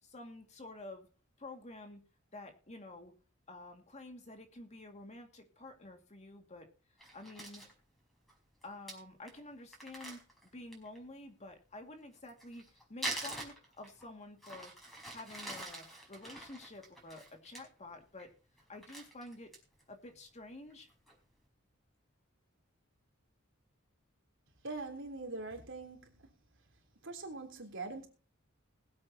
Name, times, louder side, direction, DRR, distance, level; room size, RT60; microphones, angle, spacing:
voice 1, 0.0-1.1 1.4-2.0 2.3-3.1 3.5-6.7 7.1-7.6 8.6-14.7 15.1-18.3 18.7-19.5 19.9-20.9, left 2 dB, 35° left, 2.3 m, -50 dB
Crumpling crinkling, 7.0-7.7 8.3-8.4 8.6-8.7 8.9-9.0 9.3-9.4 9.7-11.0 12.1-14.1 14.4-17.6 18.0-18.3 18.6-19.8 20.2-20.3 20.7-21.1, right 1 dB, ahead, 5.0 m, -44 dB
voice 2, 24.6-26.2 27.0-28.1, right 3 dB, 65° right, 3.5 m, -43 dB
21.0 x 8.6 x 2.9 m
head